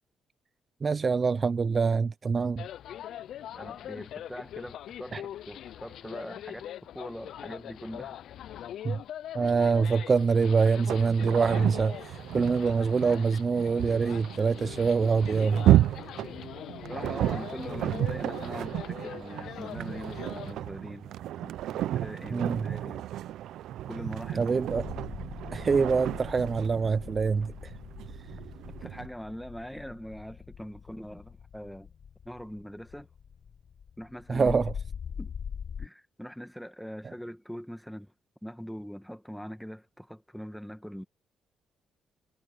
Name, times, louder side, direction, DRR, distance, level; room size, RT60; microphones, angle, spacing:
voice 1, 0.8-2.7 5.1-5.2 8.8-9.0 9.3-15.7 22.3-22.7 24.4-24.8 25.5-27.7 34.3-34.7, right 5 dB, 35° right, 0.5 m, -25 dB
sound 1, 2.6-20.5, left 11 dB, 75° left, 0.4 m, -42 dB
voice 2, 3.6-8.2 16.9-23.1 23.8-24.6 28.7-31.9 32.2-33.1 34.0-34.6 35.2-35.3 35.8-38.1 38.4-41.0, equal, ahead, 1.4 m, -42 dB
sound 2, 10.8-29.1, right 13 dB, 85° right, 0.5 m, -32 dB
sound 3, 24.7-35.9, left 7 dB, 45° left, 0.8 m, -43 dB
cardioid pair, 115°, 0 cm